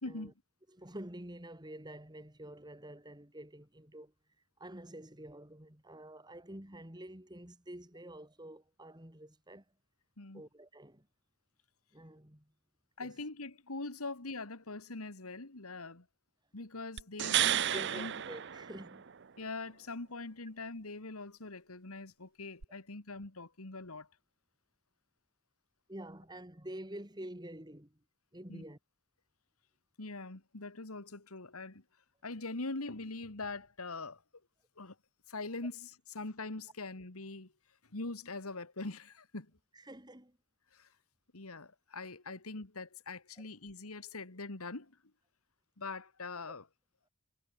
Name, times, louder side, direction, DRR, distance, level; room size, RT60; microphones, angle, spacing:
voice 1, 0.0-0.3 10.2-10.4 13.0-16.1 16.5-18.1 19.4-24.1 28.5-28.6 30.0-31.8 32.2-34.2 34.8-35.0 35.3-37.5 37.9-39.6 40.7-40.9 41.3-45.0 45.8-46.7, left 3 dB, 85° left, 2.2 m, -43 dB
voice 2, 0.7-4.1 4.6-9.6 10.3-11.1 11.9-12.4 13.0-13.1 17.7-19.0 25.9-27.9 28.3-28.8 39.7-40.4, right 1 dB, 20° right, 2.9 m, -48 dB
sound 1, 17.0-19.2 22.6-22.7, right 11 dB, 55° right, 0.7 m, -32 dB
head